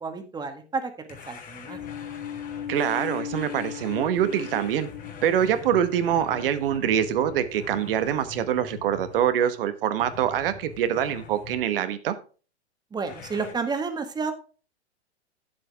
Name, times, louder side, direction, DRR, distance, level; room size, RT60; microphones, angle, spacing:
voice 1, 0.0-0.9 1.3-1.8 12.9-14.3, right 4 dB, 10° right, 8 dB, 1.4 m, -30 dB
sound 1, 1.1-9.6 10.0-11.7 13.1-13.5, left 7 dB, 25° left, 1.8 m, -43 dB
sound 2, 1.7-8.1, left 9 dB, 70° left, 0.7 m, -38 dB
voice 2, 2.7-4.9 5.2-12.1, right 10 dB, 55° right, 11 dB, 1.2 m, -25 dB
10.0 x 7.7 x 3.5 m, 0.36 s
hypercardioid pair, 110°, 33 cm